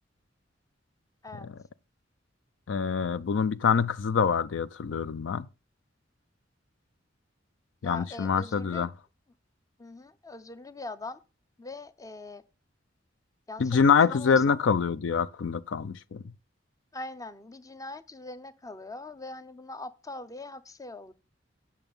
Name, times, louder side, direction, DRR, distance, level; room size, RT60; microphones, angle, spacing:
voice 1, 2.7-5.5 7.8-8.9 13.6-16.2, left 6 dB, 75° left, 0.4 m, -25 dB
voice 2, 7.8-8.9 9.8-11.2 11.6-12.4 13.5-14.7 16.9-21.1, left 2 dB, 20° left, 0.6 m, -42 dB
9.0 x 6.7 x 5.4 m
head